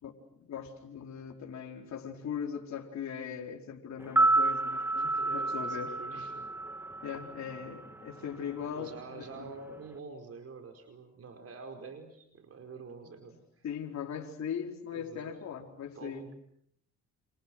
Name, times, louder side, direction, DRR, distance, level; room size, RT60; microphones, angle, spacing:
voice 1, 0.4-5.9 7.0-9.5 13.6-16.2, left 7 dB, 65° left, 1 dB, 4.7 m, -39 dB
sound 1, 4.0-8.2 8.4-8.5, right 2 dB, 10° right, 1.5 m, -30 dB
voice 2, 5.0-6.4 8.7-13.6 14.9-15.3 15.9-16.3, right 4 dB, 50° right, 5 dB, 5.0 m, -47 dB
29.5 x 28.5 x 6.3 m, 0.71 s
cardioid pair, 90°, 30 cm